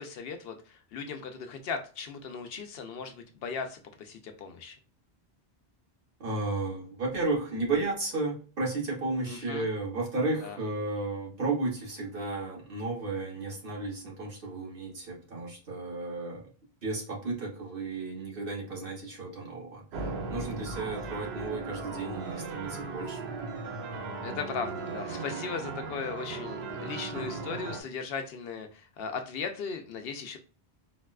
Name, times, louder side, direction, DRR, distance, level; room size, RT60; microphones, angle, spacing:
voice 1, 0.0-4.8 9.3-9.7 10.4-10.6 24.2-30.4, left 5 dB, 75° left, 6 dB, 0.8 m, -37 dB
voice 2, 6.2-16.4 16.8-23.4, right 3 dB, 60° right, -1 dB, 1.2 m, -33 dB
sound 1, 19.9-27.8, right 4 dB, 85° right, 0.9 m, -37 dB
4.0 x 2.2 x 2.3 m, 0.38 s
omnidirectional pair, 1.0 m